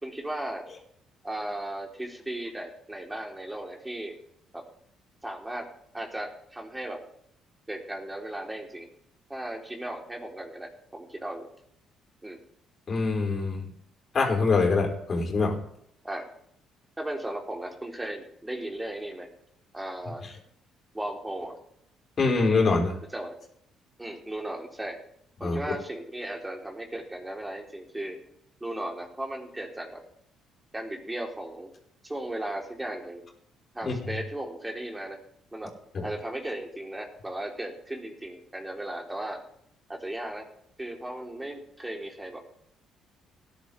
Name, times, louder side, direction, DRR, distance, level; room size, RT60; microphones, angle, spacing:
voice 1, 0.0-0.7 1.2-4.2 4.5-4.6 5.2-5.7 5.9-7.0 7.7-8.9 9.3-11.5 12.2-12.4 16.0-16.3 17.0-19.3 19.7-20.2 20.9-21.5 23.1-23.4 24.0-25.0 25.4-28.2 28.6-30.0 30.7-31.7 32.0-33.2 33.7-35.2 35.5-35.7 36.0-39.4 39.9-40.5 40.8-42.4, right 1 dB, 15° right, 0 dB, 3.8 m, -36 dB
voice 2, 12.9-13.6 14.1-15.6 22.2-23.0 25.4-25.6 33.8-33.9 35.9-36.0, left 3 dB, 45° left, 0 dB, 4.8 m, -24 dB
18.5 x 11.0 x 3.5 m, 0.72 s
hypercardioid pair, 55°, 0 cm